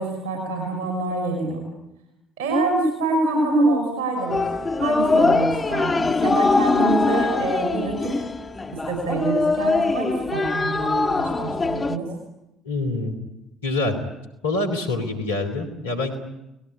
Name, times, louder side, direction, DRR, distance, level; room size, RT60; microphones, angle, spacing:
voice 1, 0.0-1.6 2.4-4.4 4.8-8.2 8.9-12.1, right 2 dB, 70° right, 3 dB, 5.8 m, -25 dB
Wind instrument woodwind instrument, 4.2-8.9, left 2 dB, 45° left, 3.2 m, -38 dB
sound 1, 4.3-12.0, left 3 dB, 25° left, 1.5 m, -22 dB
voice 2, 12.6-13.2 13.6-14.0 14.4-16.2, left 2 dB, 80° left, 6 dB, 3.0 m, -25 dB
30.0 x 20.0 x 8.5 m, 0.91 s
figure-of-eight pair, 55°, 0 cm